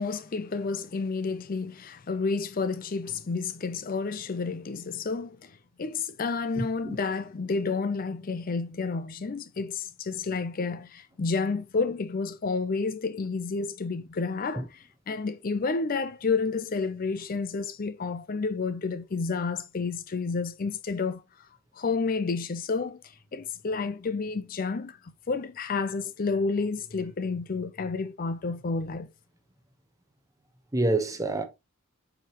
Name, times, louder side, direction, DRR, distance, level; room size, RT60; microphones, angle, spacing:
voice 1, 0.0-21.2 21.8-25.0 25.3-29.1, left 4 dB, 40° left, 0.5 m, -30 dB
voice 2, 6.6-7.0 14.5-14.7 30.7-31.4, right 2 dB, 15° right, 1.1 m, -27 dB
7.7 x 5.0 x 3.0 m
head